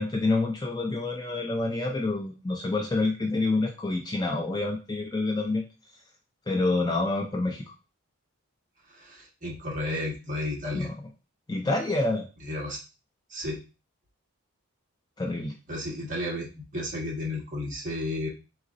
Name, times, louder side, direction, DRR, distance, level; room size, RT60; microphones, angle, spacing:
voice 1, 0.0-5.6 6.5-7.6 10.7-10.9 11.5-12.3 15.2-15.5, left 2 dB, 20° left, 1 dB, 0.4 m, -27 dB
voice 2, 8.9-10.9 12.4-12.8 13.3-13.6 15.7-18.3, left 1 dB, 35° right, -4 dB, 1.3 m, -33 dB
3.9 x 3.9 x 2.5 m, 0.31 s
head